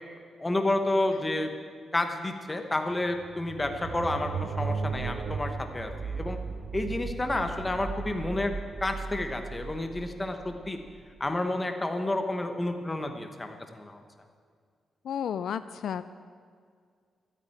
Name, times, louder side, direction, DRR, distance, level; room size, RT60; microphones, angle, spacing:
voice 1, 0.4-1.5 1.9-6.4 6.7-8.5 8.8-10.8 11.2-14.0, left 2 dB, 15° left, 6 dB, 1.1 m, -30 dB
sound 1, 2.9-11.3, right 5 dB, 65° right, 1.1 m, -36 dB
voice 2, 15.0-16.1, left 8 dB, 75° left, 13 dB, 0.4 m, -32 dB
13.0 x 9.2 x 8.9 m, 2.1 s
wide cardioid pair, 155°, 0 cm